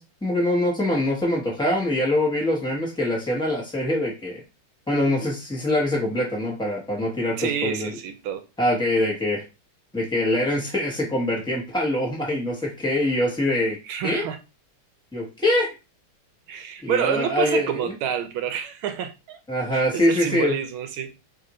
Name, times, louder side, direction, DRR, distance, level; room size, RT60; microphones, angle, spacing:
voice 1, 0.0-4.4 4.9-7.9 8.6-9.4 9.9-13.8 14.0-14.2 15.1-15.7 16.8-17.9 19.5-20.6, left 1 dB, 5° left, 0.7 m, -24 dB
voice 2, 7.4-8.4 13.8-14.4 16.5-19.4 19.7-21.1, right 9 dB, 75° right, 1.3 m, -28 dB
3.6 x 2.5 x 4.1 m
omnidirectional pair, 2.4 m